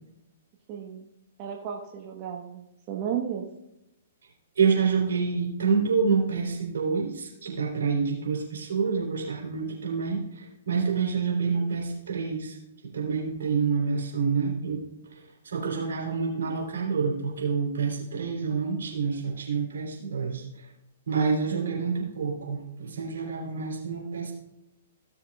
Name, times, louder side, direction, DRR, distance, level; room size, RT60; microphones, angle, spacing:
voice 1, 0.7-1.1 1.4-2.6 2.9-3.4 21.5-22.1, right 9 dB, 40° right, 0 dB, 1.2 m, -33 dB
voice 2, 4.6-12.6 12.9-14.8 15.5-20.4 21.1-24.3, right 5 dB, 70° right, -1 dB, 3.4 m, -27 dB
17.0 x 7.0 x 2.4 m, 0.87 s
figure-of-eight pair, 120°, 0 cm